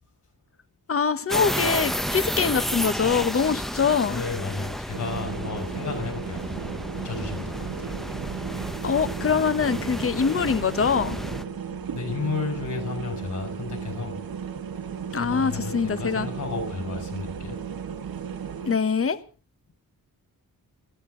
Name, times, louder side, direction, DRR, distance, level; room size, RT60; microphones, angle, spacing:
voice 1, 0.9-4.2 8.8-11.2 15.1-16.3 18.7-19.2, left 6 dB, 40° left, 1.1 m, -24 dB
sound 1, 1.3-11.4, equal, ahead, 0.7 m, -32 dB
voice 2, 4.1-7.9 11.9-14.2 15.1-17.6, left 4 dB, 55° left, 5.8 m, -33 dB
sound 2, 4.9-18.8, right 7 dB, 75° right, 1.4 m, -35 dB
20.5 x 14.0 x 3.9 m
wide cardioid pair, 170°, 36 cm